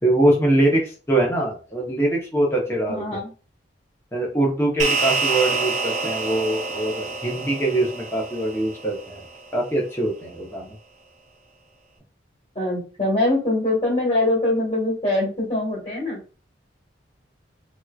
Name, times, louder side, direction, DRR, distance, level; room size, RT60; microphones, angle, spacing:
voice 1, 0.0-3.2 4.1-9.2 9.5-10.7, right 1 dB, 15° left, -2 dB, 0.9 m, -23 dB
voice 2, 2.9-3.3 12.5-16.2, left 2 dB, 30° left, -5 dB, 1.6 m, -23 dB
sound 1, 4.8-9.4, right 4 dB, 40° right, 0.6 m, -27 dB
3.5 x 3.0 x 2.4 m, 0.35 s
head